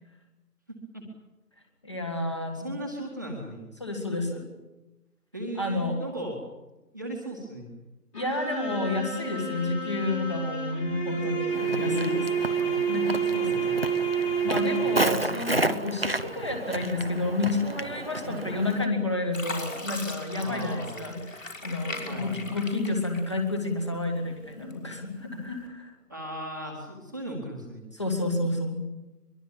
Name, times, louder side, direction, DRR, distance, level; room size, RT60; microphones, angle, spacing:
voice 1, 0.7-1.0 2.5-3.6 5.3-6.4 6.9-7.7 11.6-12.2 12.5-12.9 13.3-13.8 14.7-15.4 18.1-18.5 20.4-21.2 22.1-22.4 26.1-27.8, right 1 dB, 10° right, -2 dB, 1.8 m, -37 dB
voice 2, 1.8-2.7 3.8-4.5 5.6-6.0 8.1-12.3 12.5-13.4 14.4-25.9 27.9-28.9, left 2 dB, 20° left, 3 dB, 2.1 m, -30 dB
sound 1, 8.1-15.4, right 6 dB, 75° left, 7.6 m, -29 dB
Walk footsteps, 11.5-18.9, right 1 dB, 35° right, 0.9 m, -32 dB
Fill (with liquid), 18.6-18.9 19.3-23.7 24.2-25.0 25.5-25.7, left 2 dB, 50° left, 5.8 m, -39 dB
23.5 x 23.0 x 8.6 m, 1.0 s
figure-of-eight pair, 170°, 48 cm